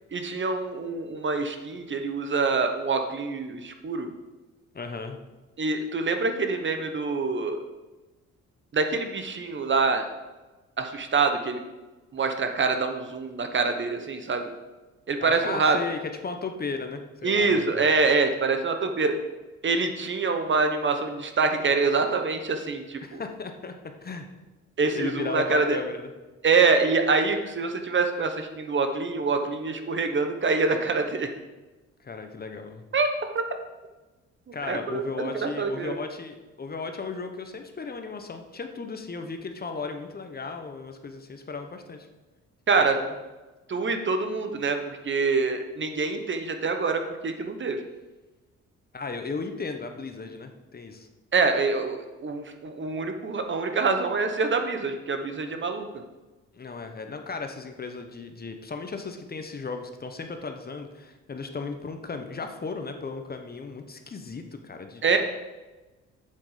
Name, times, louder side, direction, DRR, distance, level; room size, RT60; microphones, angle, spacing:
voice 1, 0.1-4.1 5.6-7.6 8.7-10.1 10.8-11.6 12.1-14.5 15.1-15.8 17.2-19.1 19.6-23.2 24.8-25.8 26.4-31.3 32.9-33.1 33.3-33.4 34.7-36.0 42.7-43.0 43.7-47.8 51.3-55.9 65.0-65.2, right 4 dB, 40° right, 6 dB, 1.1 m, -25 dB
voice 2, 4.7-5.2 15.2-17.8 23.0-23.7 24.0-24.3 24.9-26.1 32.0-32.8 34.5-42.1 42.8-43.1 43.7-43.8 48.9-51.1 56.5-65.2, left 4 dB, 30° left, 6 dB, 1.0 m, -36 dB
7.7 x 7.2 x 5.0 m, 1.2 s
cardioid pair, 90°, 30 cm